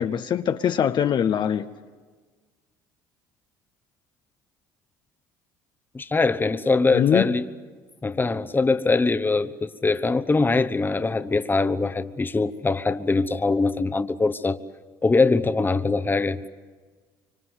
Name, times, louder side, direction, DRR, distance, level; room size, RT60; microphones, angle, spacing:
voice 1, 0.0-1.7 6.9-7.3, left 9 dB, 50° left, 8 dB, 0.9 m, -22 dB
voice 2, 5.9-7.5 8.0-14.6 15.0-16.5, left 3 dB, 20° left, 10 dB, 1.1 m, -22 dB
25.0 x 25.0 x 8.1 m, 1.5 s
hypercardioid pair, 70°, 10 cm